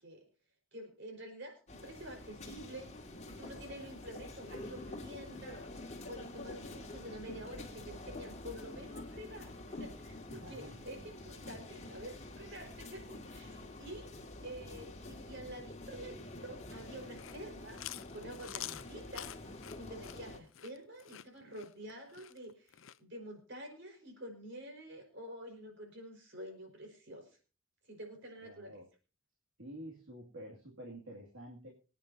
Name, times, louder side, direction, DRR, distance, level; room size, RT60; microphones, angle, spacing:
voice 1, 0.7-2.9 3.3-5.6 6.1-14.1 14.4-17.9 18.1-27.3 27.9-28.8, right 1 dB, 60° right, 3 dB, 4.8 m, -48 dB
sound 1, 1.7-20.4, left 2 dB, 35° left, 2.0 m, -47 dB
voice 2, 10.3-10.8 28.4-28.9 29.6-31.7, equal, 80° right, -2 dB, 2.4 m, -49 dB
Chewing mastication, 17.0-23.0, left 13 dB, 70° left, 0.5 m, -47 dB
25.0 x 9.3 x 2.7 m, 0.35 s
head